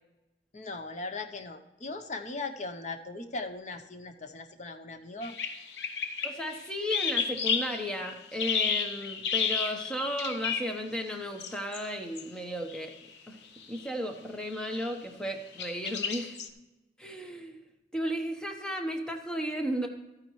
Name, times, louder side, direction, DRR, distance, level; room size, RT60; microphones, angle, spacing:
voice 1, 0.5-5.3, left 3 dB, 40° left, 7 dB, 0.8 m, -39 dB
sound 1, 5.2-10.8 11.4-11.9 12.2-12.3 12.7-12.9 13.6-13.9 14.5-14.9 15.6-16.5, left 6 dB, 80° left, 0.8 m, -32 dB
voice 2, 6.2-12.9 13.3-13.4 13.7-16.4 17.0-17.6 17.9-19.9, equal, 5° left, 4 dB, 1.0 m, -34 dB
13.0 x 9.5 x 3.1 m, 1.0 s
head